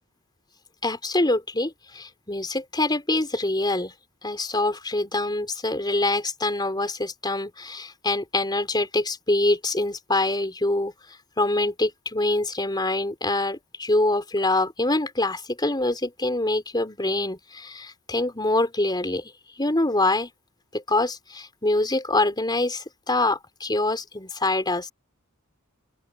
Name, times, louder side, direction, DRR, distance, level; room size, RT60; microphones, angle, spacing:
voice 1, 0.8-3.9 4.2-10.9 11.4-19.3 19.6-20.3 20.7-24.9, left 2 dB, 20° left, 4.1 m, -25 dB
open air
head